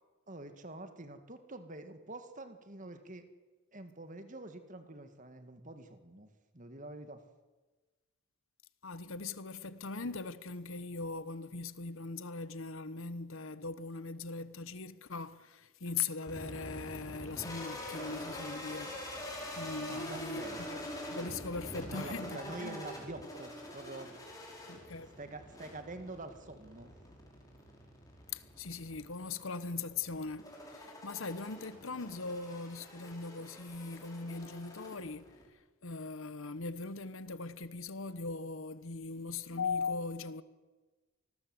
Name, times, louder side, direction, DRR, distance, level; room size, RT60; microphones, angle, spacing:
voice 1, 0.3-3.3 3.7-6.3 6.5-7.2 19.9-20.6 21.9-24.1 25.2-26.9, right 2 dB, 35° right, 1.9 m, -46 dB
voice 2, 8.8-18.9 19.6-22.8 24.7-25.2 28.3-35.4 35.8-40.4, left 4 dB, 65° left, 1.1 m, -40 dB
sound 1, 16.3-35.5, left 1 dB, 15° left, 5.2 m, -45 dB
25.0 x 20.5 x 7.9 m
head